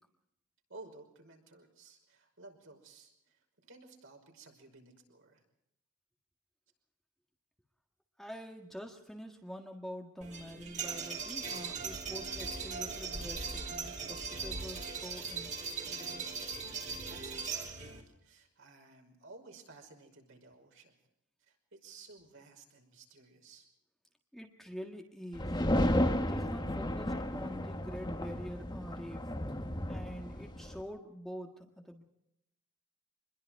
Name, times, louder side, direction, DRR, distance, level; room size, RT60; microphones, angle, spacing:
voice 1, 0.7-3.4 3.6-5.4 17.1-20.9 21.5-23.7, right 3 dB, 60° right, 3 dB, 5.6 m, -55 dB
voice 2, 8.2-15.5 15.8-16.3 16.7-16.8 24.3-25.6 26.3-29.3 29.8-32.0, equal, ahead, 3 dB, 1.6 m, -46 dB
sound 1, 10.2-18.0, right 4 dB, 35° right, 3.4 m, -39 dB
sound 2, 25.4-30.8, left 1 dB, 20° left, 1.5 m, -33 dB
26.0 x 21.5 x 4.7 m, 0.81 s
head